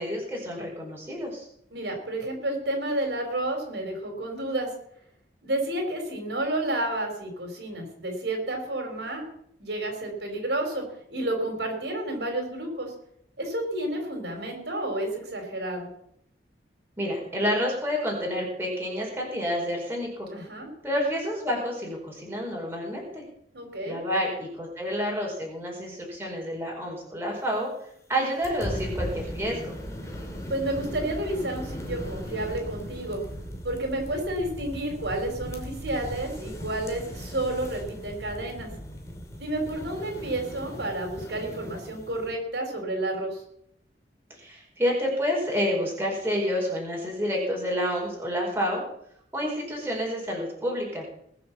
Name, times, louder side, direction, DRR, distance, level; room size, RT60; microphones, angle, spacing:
voice 1, 0.0-1.4 17.0-20.3 20.8-23.2 23.8-27.7 28.1-29.7 44.4-48.8 49.3-51.0, equal, 10° right, -2 dB, 4.7 m, -29 dB
voice 2, 1.7-4.7 5.4-9.2 9.6-10.8 11.1-12.9 13.4-15.9 20.3-20.7 23.5-24.0 30.5-33.2 33.6-38.7 39.4-43.4, right 1 dB, 70° right, 3 dB, 4.4 m, -30 dB
sound 1, 28.4-42.4, equal, 15° left, 2.6 m, -38 dB
20.5 x 7.2 x 7.2 m, 0.71 s
head